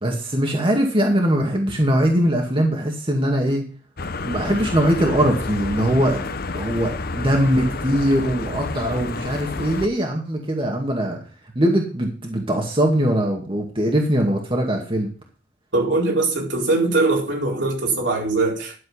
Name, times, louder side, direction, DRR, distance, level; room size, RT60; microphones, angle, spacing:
voice 1, 0.0-3.6 4.2-11.2 11.5-15.1, equal, 30° right, 2.2 m, -21 dB
sound 1, 4.0-9.9, left 3 dB, 55° left, 0.9 m, -29 dB
voice 2, 15.7-18.8, right 3 dB, 70° right, 4.4 m, -21 dB
11.5 x 7.4 x 5.7 m
head